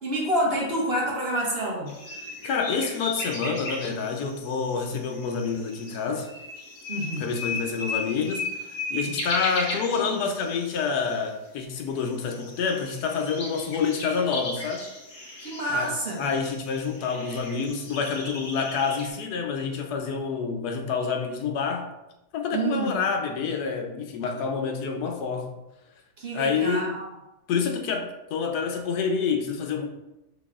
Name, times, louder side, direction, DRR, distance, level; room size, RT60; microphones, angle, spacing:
voice 1, 0.0-2.0 6.9-7.2 15.4-16.3 22.5-23.0 26.2-27.1, right 1 dB, 45° right, -3 dB, 1.1 m, -28 dB
sound 1, 1.9-11.3 11.6-11.7 11.9-19.1, left 2 dB, 70° left, 1.7 m, -36 dB
voice 2, 2.4-6.3 7.2-8.5 8.9-14.9 15.7-21.9 22.3-25.5 26.3-26.9 27.5-29.9, left 5 dB, 90° left, 4 dB, 1.2 m, -28 dB
6.0 x 3.4 x 2.4 m, 0.93 s
omnidirectional pair, 1.6 m